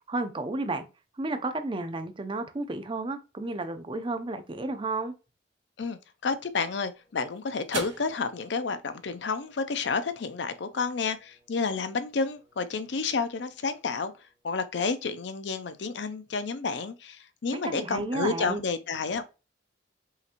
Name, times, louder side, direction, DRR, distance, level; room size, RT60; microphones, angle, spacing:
voice 1, 0.1-0.8 1.2-5.1 17.5-18.6, right 2 dB, 25° right, 0.5 m, -32 dB
voice 2, 5.8-14.1 14.4-19.2, left 4 dB, 65° left, 0.5 m, -30 dB
sound 1, 6.4-15.0, right 4 dB, 80° right, 2.1 m, -47 dB
5.6 x 2.9 x 2.5 m
head